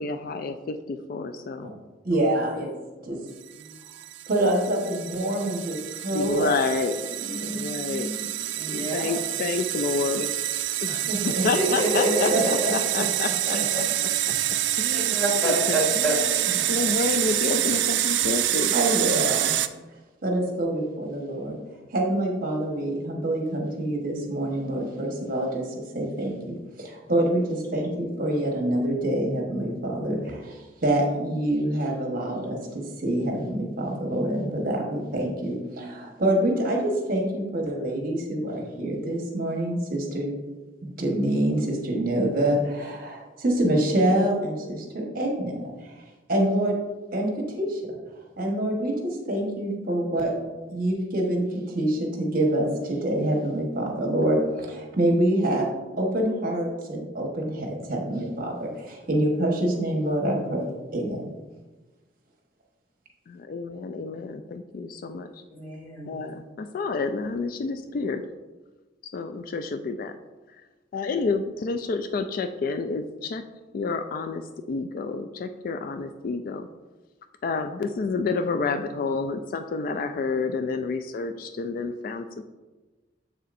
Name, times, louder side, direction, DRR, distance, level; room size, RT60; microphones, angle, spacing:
voice 1, 0.0-1.7 6.1-7.1 7.4-8.3 8.7-10.3 10.8-13.8 14.8-15.2 15.4-18.7 63.3-65.4 66.1-68.2 69.1-70.2 70.9-73.4 73.7-76.7 77.4-82.4, left 4 dB, 50° left, 8 dB, 0.3 m, -29 dB
voice 2, 2.0-2.7 3.0-3.2 4.3-6.5 10.9-11.4 12.3-12.4 12.9-13.0 16.6-16.9 18.7-19.5 20.2-21.6 21.9-40.3 40.8-46.0 46.3-46.8 47.1-48.0 48.4-50.3 50.7-55.7 56.0-61.3, right 1 dB, 50° right, 0 dB, 1.2 m, -26 dB
voice 3, 3.0-3.7 7.2-9.1 11.4-12.7 13.5-13.6 14.4-14.5 14.9-16.6 65.5-66.2, right 1 dB, 10° left, -5 dB, 2.2 m, -29 dB
sound 1, 3.6-19.7, right 13 dB, 80° right, 0.4 m, -27 dB
7.3 x 6.7 x 2.5 m, 1.2 s
head